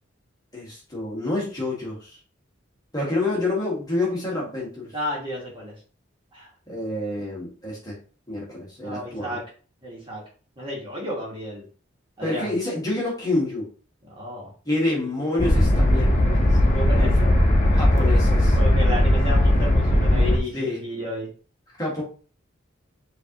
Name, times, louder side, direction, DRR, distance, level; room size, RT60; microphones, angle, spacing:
voice 1, 0.5-2.2 2.9-4.9 6.7-8.0 8.3-9.4 12.2-13.7 14.6-16.6 17.0-17.3 17.7-18.6 20.5-20.8 21.8-22.0, left 2 dB, 20° left, -4 dB, 1.3 m, -28 dB
voice 2, 4.9-5.7 6.3-6.5 8.8-9.4 9.8-10.2 10.6-11.6 12.2-12.5 14.0-14.5 16.6-17.3 18.5-21.3, left 1 dB, 25° right, -4 dB, 1.4 m, -32 dB
sound 1, 15.4-20.4, left 1 dB, 35° left, 0.7 m, -18 dB
5.0 x 2.6 x 2.9 m, 0.39 s
head